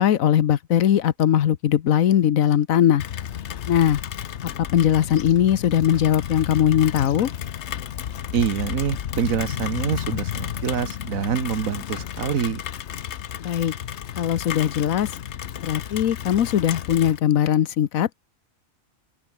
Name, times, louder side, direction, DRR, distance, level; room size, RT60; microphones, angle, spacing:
voice 1, 0.0-3.0 3.7-4.0 4.4-7.3 13.4-13.7 14.2-15.1 15.6-18.2, left 10 dB, 75° left, 1.3 m, -20 dB
Rain, 3.0-17.2, left 9 dB, 60° left, 1.0 m, -32 dB
voice 2, 8.3-12.6, right 8 dB, 75° right, 1.6 m, -26 dB
open air
omnidirectional pair, 1.4 m